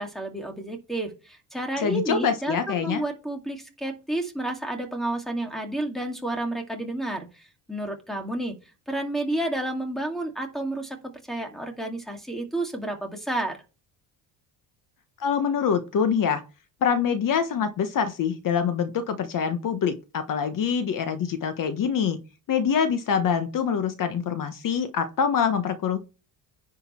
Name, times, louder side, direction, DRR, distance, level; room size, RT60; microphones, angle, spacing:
voice 1, 0.0-8.6 8.9-11.0 11.3-13.6, right 1 dB, ahead, 4 dB, 2.3 m, -31 dB
voice 2, 1.8-3.0 15.2-16.4 16.8-22.2 22.5-26.0, left 7 dB, 50° left, 9 dB, 1.2 m, -25 dB
10.5 x 5.3 x 4.4 m, 0.31 s
cardioid pair, 135°, 41 cm